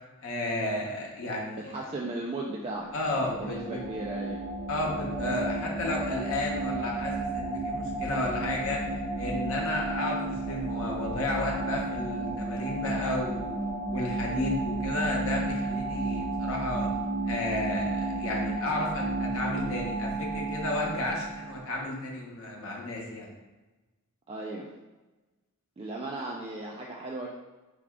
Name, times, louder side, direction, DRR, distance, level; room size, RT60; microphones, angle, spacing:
voice 1, 0.2-1.7 2.9-3.8 4.7-8.8 9.2-13.5 13.9-16.9 17.3-23.3, left 2 dB, 65° left, -1 dB, 0.8 m, -32 dB
voice 2, 1.7-2.9 3.4-4.4 24.3-24.7 25.8-27.3, right 2 dB, 25° right, -1 dB, 0.3 m, -36 dB
sound 1, 2.8-21.6, right 2 dB, 40° left, 1.3 m, -32 dB
4.8 x 2.3 x 3.5 m, 1.2 s
head